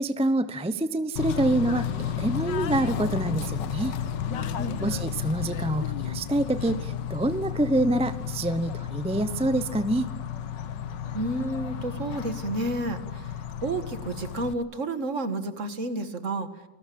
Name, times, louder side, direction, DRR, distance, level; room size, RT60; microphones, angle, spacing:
voice 1, 0.0-3.9 4.8-10.1, right 1 dB, 10° right, 12 dB, 0.4 m, -26 dB
Bird / Train, 1.2-14.5, left 8 dB, 75° left, 1.8 m, -32 dB
voice 2, 4.3-4.8 11.1-13.3 13.6-16.5, right 2 dB, 45° right, 10 dB, 1.9 m, -31 dB
29.0 x 20.0 x 8.6 m, 1.0 s
omnidirectional pair, 1.9 m